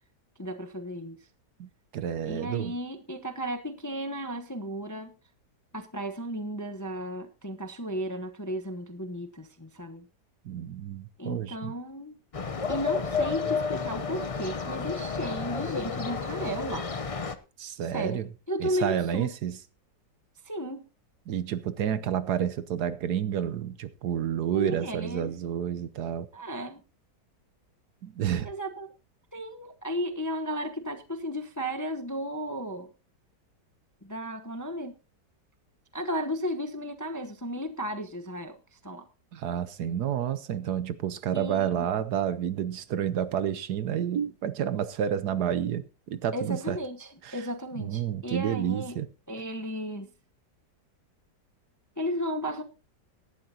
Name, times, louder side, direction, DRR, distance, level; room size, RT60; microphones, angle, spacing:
voice 1, 0.4-1.2 2.2-5.1 5.7-10.1 11.2-12.2 12.7-16.9 17.8-18.2 18.5-19.3 20.4-20.8 24.5-25.3 26.3-26.8 28.4-28.9 29.3-32.9 34.0-34.9 35.9-39.1 41.3-41.9 46.3-49.0 49.3-50.1 52.0-52.6, equal, 15° left, 0.7 m, -34 dB
voice 2, 1.6-2.7 10.4-11.7 17.6-18.3 18.6-19.6 21.3-26.3 28.0-28.5 39.3-46.8 47.2-47.4 47.8-49.1, right 9 dB, 70° right, 1.3 m, -30 dB
sound 1, 12.3-17.3, left 5 dB, 55° left, 0.3 m, -31 dB
17.5 x 11.5 x 2.8 m
omnidirectional pair, 1.9 m